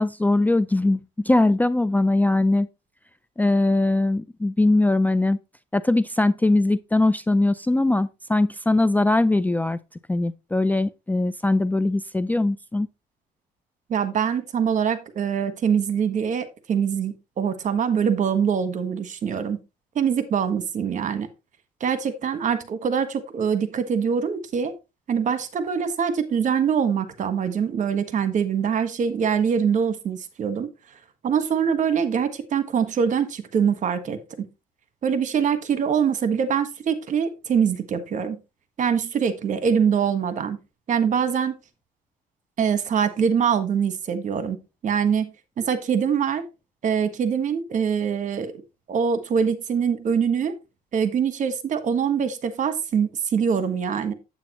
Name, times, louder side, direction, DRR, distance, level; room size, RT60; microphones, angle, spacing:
voice 1, 0.0-2.7 3.4-5.4 5.7-9.8 10.1-12.9, left 2 dB, 10° left, 0.4 m, -21 dB
voice 2, 13.9-19.6 19.9-21.3 21.8-24.7 25.1-30.7 31.2-34.5 35.0-38.4 38.8-40.6 40.9-41.6 42.6-45.3 45.6-46.5 46.8-48.5 48.9-50.6 50.9-54.1, right 7 dB, 50° right, 1.5 m, -24 dB
8.8 x 8.2 x 3.1 m
cardioid pair, 110°, 17 cm